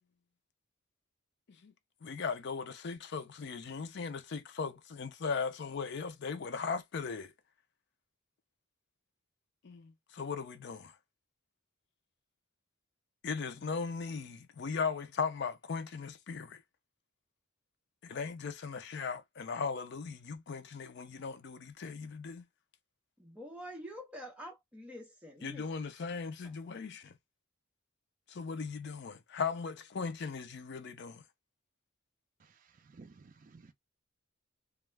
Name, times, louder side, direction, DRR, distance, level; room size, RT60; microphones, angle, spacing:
voice 1, 2.0-7.3 9.6-10.9 13.2-16.6 18.0-22.4 25.4-27.1 28.3-31.2, left 5 dB, 55° left, 0.4 m, -38 dB
voice 2, 23.2-26.0 26.4-26.6, equal, 5° right, 0.7 m, -47 dB
voice 3, 32.4-33.7, right 4 dB, 40° right, 0.4 m, -56 dB
2.3 x 2.2 x 3.2 m
head